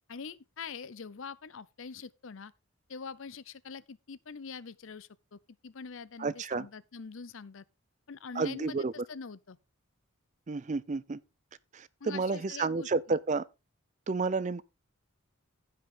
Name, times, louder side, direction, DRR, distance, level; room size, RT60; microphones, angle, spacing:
voice 1, 0.1-2.5 2.9-7.6 8.1-9.6 12.0-13.2, left 5 dB, 60° left, 0.6 m, -44 dB
voice 2, 6.2-6.7 8.4-8.9 10.5-11.2 11.7-13.4 14.1-14.6, right 4 dB, 35° right, 0.4 m, -31 dB
15.0 x 5.7 x 3.7 m
head